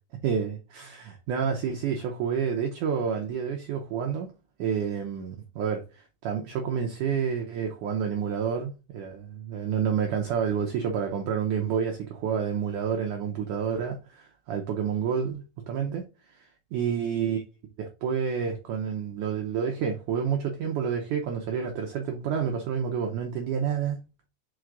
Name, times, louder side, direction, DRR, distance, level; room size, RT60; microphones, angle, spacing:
voice 1, 0.2-4.3 4.6-17.4 17.8-24.0, right 7 dB, 75° right, 1.9 m, -29 dB
5.6 x 4.7 x 3.8 m
omnidirectional pair, 4.5 m